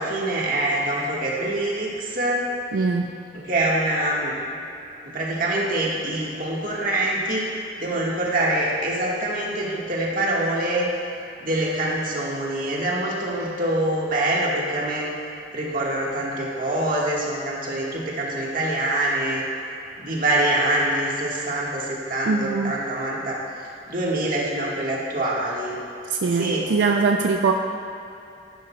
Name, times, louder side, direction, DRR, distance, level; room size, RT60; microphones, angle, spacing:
voice 1, 0.0-2.5 2.8-2.9 3.3-4.4 5.0-7.5 7.8-10.9 11.4-15.1 15.5-19.4 20.0-23.4 23.9-25.8 26.3-26.7, right 1 dB, 50° right, -4 dB, 1.6 m, -25 dB
voice 2, 2.7-3.0 22.3-22.7 26.1-27.5, right 4 dB, 85° right, 3 dB, 0.4 m, -22 dB
11.5 x 10.5 x 2.3 m, 2.8 s
head